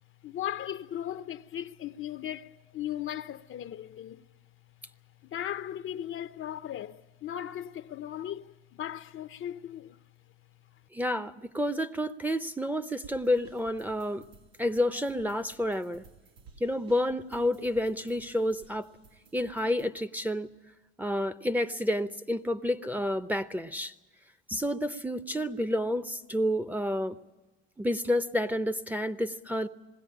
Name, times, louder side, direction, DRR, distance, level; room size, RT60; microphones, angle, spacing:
voice 1, 0.2-4.2 5.2-10.0, left 11 dB, 45° left, 0.6 m, -37 dB
voice 2, 10.9-14.2 14.6-16.0 16.6-18.9 19.3-20.5 21.0-23.9 24.5-27.2 27.8-29.7, left 1 dB, 5° right, 0.7 m, -29 dB
sound 1, 13.0-19.9, right 5 dB, 90° right, 3.0 m, -56 dB
20.5 x 16.5 x 10.0 m
supercardioid pair, 95°, 29 cm